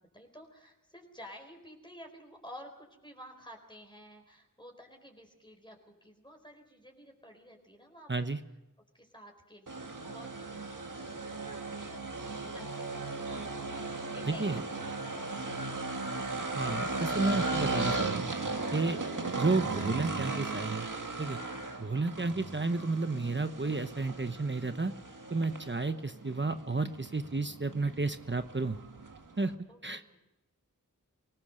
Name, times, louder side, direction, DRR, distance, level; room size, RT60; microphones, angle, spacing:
voice 1, 0.0-8.3 8.9-13.3 14.1-14.6 15.0-16.3 21.8-22.0 29.7-30.2, equal, 15° left, 2 dB, 4.4 m, -52 dB
voice 2, 8.1-8.4 14.3-14.6 16.6-18.4 18.7-19.0 19.4-20.9 21.2-21.4 21.8-24.9 25.3-28.8 29.4-29.5 29.8-30.2, right 3 dB, 35° right, 9 dB, 1.0 m, -32 dB
sound 1, 9.7-29.5, right 3 dB, 70° right, 1.8 m, -37 dB
24.5 x 18.5 x 6.6 m, 0.97 s
wide cardioid pair, 55°, 33 cm